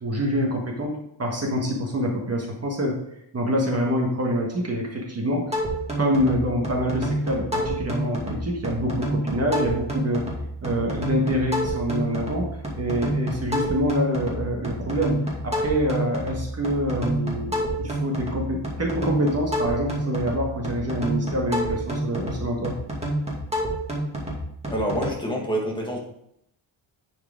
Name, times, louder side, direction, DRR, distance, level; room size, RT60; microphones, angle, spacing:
voice 1, 0.0-3.0 3.3-5.6 6.0-10.2 10.6-22.8, equal, 35° right, 0 dB, 1.6 m, -26 dB
sound 1, 5.5-25.1, right 1 dB, 15° right, 2.2 m, -29 dB
voice 2, 24.7-26.0, right 1 dB, 10° left, -2 dB, 1.6 m, -26 dB
10.5 x 4.9 x 3.7 m, 0.75 s
wide cardioid pair, 130°, 45 cm